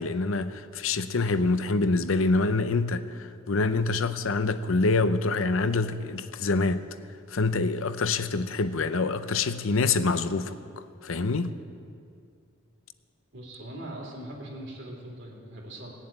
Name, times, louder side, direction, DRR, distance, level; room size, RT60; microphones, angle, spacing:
voice 1, 0.0-6.8 7.3-11.5, left 3 dB, 80° left, 0.7 m, -26 dB
voice 2, 13.3-15.9, right 1 dB, 65° right, 3.5 m, -41 dB
18.5 x 7.3 x 9.0 m
head